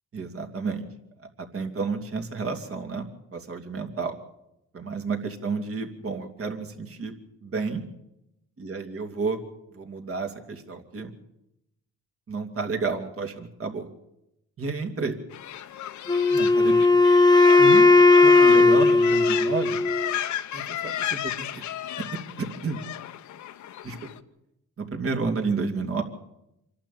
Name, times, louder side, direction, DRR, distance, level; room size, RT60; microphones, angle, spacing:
voice 1, 0.1-0.8 1.4-3.1 3.3-4.2 4.7-7.1 7.4-7.8 8.6-9.4 9.7-11.1 12.3-13.9 14.6-15.2 16.3-16.9 17.6-17.9 18.2-19.8 20.5-21.6 22.4-22.8 23.8-24.0 24.8-26.0, right 4 dB, 50° right, 5 dB, 2.9 m, -31 dB
sound 1, 15.3-24.2, left 11 dB, 70° left, 1.0 m, -34 dB
Wind instrument woodwind instrument, 16.1-20.1, left 3 dB, 15° left, 0.9 m, -17 dB
27.0 x 12.0 x 8.6 m, 0.85 s
cardioid pair, 90°, 30 cm